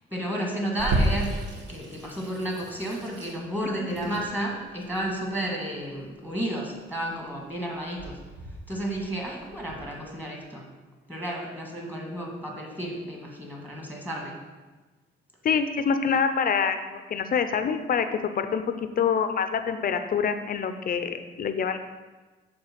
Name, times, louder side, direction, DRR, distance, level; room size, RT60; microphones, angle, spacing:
voice 1, 0.1-1.3 1.7-8.2 8.7-10.7 11.1-14.4, right 1 dB, 10° right, -1 dB, 1.5 m, -32 dB
Water tap faucet / Sink (filling or washing), 0.8-9.8, right 1 dB, 65° right, 1.3 m, -33 dB
voice 2, 15.4-18.6 19.0-21.8, left 6 dB, 45° left, 9 dB, 0.5 m, -26 dB
6.9 x 3.3 x 5.7 m, 1.3 s
cardioid pair, 90°, 20 cm